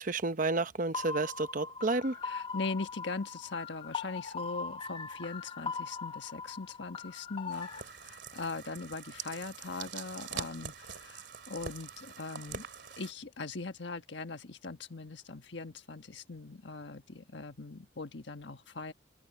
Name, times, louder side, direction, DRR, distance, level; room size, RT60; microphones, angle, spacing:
voice 1, 0.0-2.2, right 3 dB, 45° right, 0.9 m, -31 dB
sound 1, 0.9-7.8, left 5 dB, 30° left, 1.0 m, -40 dB
voice 2, 2.2-12.7 13.0-18.9, left 3 dB, 65° left, 1.4 m, -40 dB
sound 2, 7.5-13.1, right 7 dB, 60° right, 2.5 m, -44 dB
open air
head